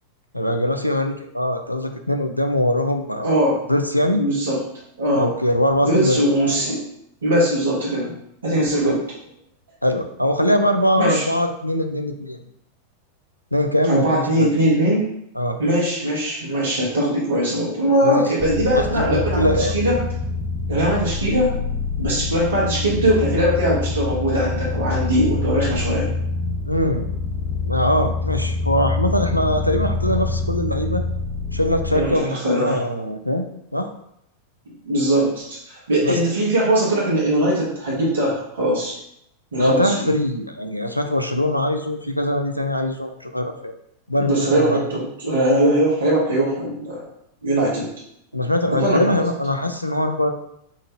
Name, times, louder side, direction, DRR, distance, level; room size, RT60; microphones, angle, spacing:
voice 1, 0.3-3.3 3.7-4.2 5.1-6.2 8.9-9.0 9.8-12.4 13.5-14.5 15.4-15.6 18.0-18.3 18.8-19.7 26.7-27.1 27.7-31.0 31.5-33.5 33.7-33.9 36.0-36.2 39.6-43.7 44.1-44.9 48.3-50.3, left 1 dB, 90° left, 6 dB, 0.3 m, -22 dB
voice 2, 3.2-3.6 4.1-4.6 5.0-5.3 5.8-6.8 7.2-8.1 8.4-9.0 11.0-11.3 13.9-15.0 15.6-20.0 20.7-21.5 22.0-26.1 31.9-32.8 34.9-38.9 39.5-40.0 44.2-47.0 47.4-47.9 48.8-49.2, right 1 dB, 70° right, -6 dB, 0.9 m, -20 dB
sound 1, 18.4-32.0, left 3 dB, 25° left, 0.7 m, -26 dB
3.6 x 2.1 x 3.5 m, 0.75 s
figure-of-eight pair, 90°, 0 cm